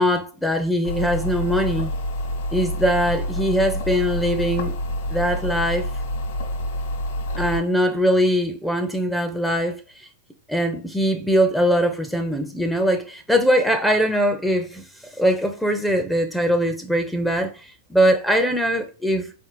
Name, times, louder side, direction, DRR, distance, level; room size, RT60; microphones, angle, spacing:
voice 1, 0.0-1.9 2.5-4.7 5.1-5.9 7.4-10.1 10.5-14.9 15.2-19.3, equal, 5° left, 0.5 m, -21 dB
sound 1, 0.8-7.6, left 1 dB, 65° left, 1.4 m, -27 dB
4.4 x 3.4 x 2.9 m
hypercardioid pair, 105°, 0 cm